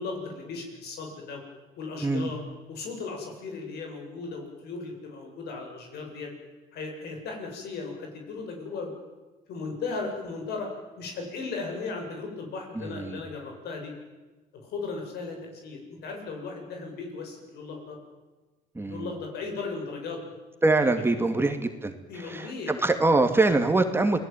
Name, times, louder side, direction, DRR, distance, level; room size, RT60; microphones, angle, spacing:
voice 1, 0.0-1.4 1.8-2.4 2.7-6.3 6.7-8.9 9.5-10.7 11.0-13.9 14.5-18.0 18.8-20.2 21.1-21.2 22.1-22.7, left 4 dB, 70° left, 2 dB, 8.0 m, -36 dB
voice 2, 12.7-13.2 18.7-19.1 20.6-24.2, right 2 dB, 15° right, 6 dB, 2.3 m, -24 dB
29.0 x 19.5 x 9.1 m, 1.2 s
cardioid pair, 110°, 17 cm